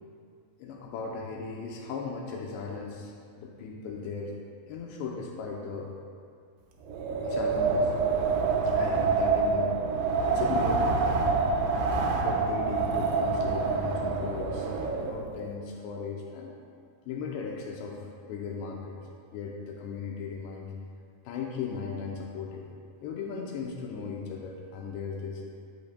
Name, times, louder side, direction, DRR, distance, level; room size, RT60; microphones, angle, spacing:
voice 1, 0.6-3.1 3.4-4.3 4.7-5.9 7.2-7.9 8.4-9.9 10.2-11.5 12.2-14.7 14.9-16.5 17.1-18.0 18.3-19.0 19.3-20.7 21.3-22.7 23.0-25.4, left 5 dB, 85° left, 0 dB, 2.9 m, -37 dB
Wind, 6.8-15.3, right 4 dB, 85° right, 3.0 m, -27 dB
13.5 x 8.6 x 2.2 m, 2.2 s
omnidirectional pair, 5.0 m